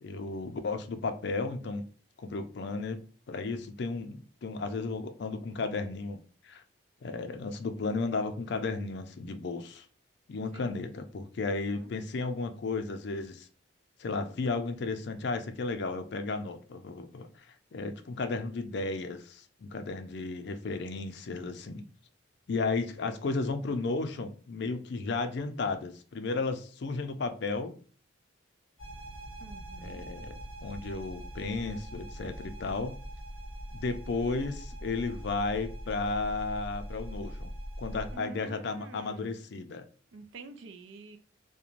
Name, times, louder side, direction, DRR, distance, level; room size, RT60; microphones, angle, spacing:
voice 1, 0.0-1.8 2.2-6.6 7.0-9.9 10.3-13.5 14.0-21.8 22.5-27.7 29.8-30.3 30.6-33.0 33.7-39.9, left 3 dB, 55° left, 0.4 m, -34 dB
voice 2, 11.4-11.9 29.4-30.1 38.1-39.3 40.1-41.2, right 4 dB, 65° right, 0.4 m, -48 dB
sound 1, 28.8-38.2, equal, 50° right, 1.3 m, -42 dB
2.5 x 2.1 x 2.9 m
head